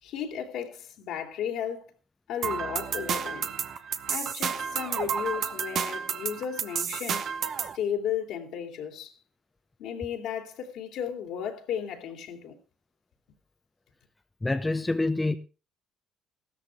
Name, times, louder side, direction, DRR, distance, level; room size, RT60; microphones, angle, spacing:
voice 1, 0.0-1.9 2.3-3.5 4.1-7.4 7.7-9.1 9.8-12.6, left 8 dB, 70° left, 3.3 m, -34 dB
sound 1, 2.4-7.8, right 7 dB, 55° right, 1.2 m, -31 dB
voice 2, 14.4-15.4, left 2 dB, 15° left, 1.1 m, -26 dB
16.0 x 13.5 x 3.6 m
hypercardioid pair, 60°, 0 cm